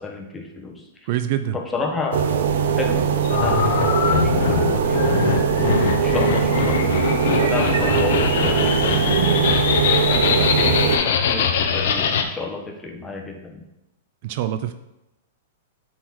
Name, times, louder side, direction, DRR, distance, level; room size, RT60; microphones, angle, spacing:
voice 1, 0.0-1.1 1.5-2.4 2.8-5.1 5.6-13.7, left 3 dB, 15° left, 2 dB, 1.2 m, -32 dB
voice 2, 1.1-1.6 14.2-14.7, right 11 dB, 50° right, 10 dB, 0.4 m, -24 dB
sound 1, 2.1-11.0, right 7 dB, 75° right, 0.8 m, -21 dB
sound 2, 3.2-12.2, left 7 dB, 65° left, 0.8 m, -22 dB
7.9 x 4.1 x 4.7 m, 0.92 s
hypercardioid pair, 140°, 0 cm